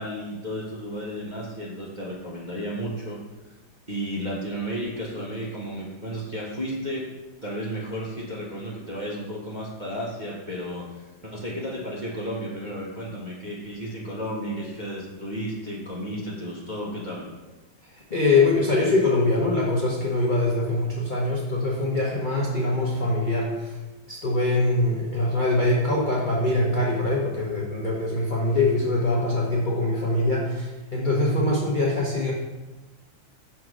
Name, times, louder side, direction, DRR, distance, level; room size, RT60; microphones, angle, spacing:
voice 1, 0.0-3.2 3.9-7.1 7.4-17.3, equal, 35° right, -6 dB, 0.8 m, -33 dB
voice 2, 17.9-23.8 24.1-32.3, left 2 dB, 45° left, -5 dB, 0.6 m, -23 dB
5.8 x 3.7 x 6.1 m, 1.1 s
omnidirectional pair, 2.2 m